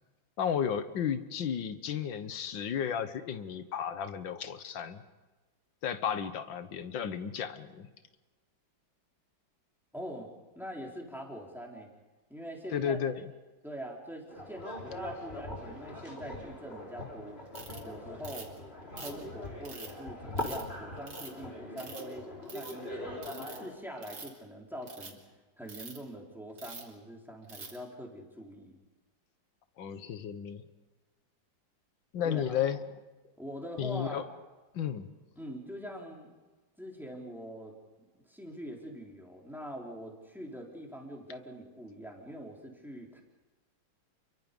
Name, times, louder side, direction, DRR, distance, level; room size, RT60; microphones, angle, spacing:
voice 1, 0.4-5.0 5.8-7.9 12.7-13.2 29.8-30.7 32.1-32.8 33.8-34.2 34.7-35.1, left 8 dB, 70° left, 11 dB, 1.9 m, -33 dB
voice 2, 9.9-10.3 10.6-11.9 12.3-13.0 13.6-17.4 17.8-18.5 19.0-22.3 22.5-22.9 23.4-25.2 25.6-28.7 32.2-32.6 33.4-34.3 35.4-36.3 36.8-37.7 38.2-43.2, equal, ahead, 0 dB, 3.8 m, -43 dB
sound 1, 14.3-23.7, left 1 dB, 30° left, 4.1 m, -41 dB
Ratchet pawl, 17.5-17.8 18.2-18.6 19.0-19.9 20.4-20.6 21.1-21.4 21.8-22.1 22.4-22.7 23.2-23.6 24.0-24.4 24.8-25.1 25.7-26.0 26.6-26.9 27.5-27.8, right 4 dB, 80° right, 3.7 m, -45 dB
29.0 x 23.0 x 5.4 m, 1.2 s
omnidirectional pair, 2.1 m